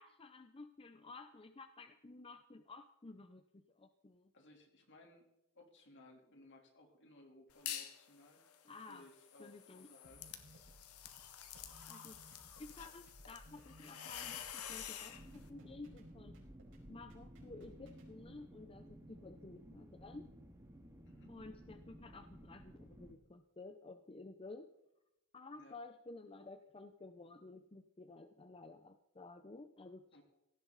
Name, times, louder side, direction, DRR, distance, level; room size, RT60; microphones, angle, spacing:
voice 1, 0.0-4.3 8.6-9.0 9.4-9.9 11.9-12.2 12.6-16.4 16.9-20.3 21.3-24.7 25.3-30.2, left 3 dB, 25° left, 9 dB, 0.7 m, -53 dB
voice 2, 4.3-5.3 5.5-10.3 21.0-21.4 25.5-25.8 30.1-30.2, left 1 dB, 55° left, 2 dB, 3.4 m, -61 dB
sound 1, 7.5-8.0 8.4-15.2, left 10 dB, 90° left, 1.5 m, -48 dB
sound 2, 10.0-18.1, equal, 60° right, 5.1 m, -61 dB
sound 3, 15.1-23.1, equal, 15° right, 2.3 m, -56 dB
17.0 x 15.5 x 4.0 m, 0.86 s
head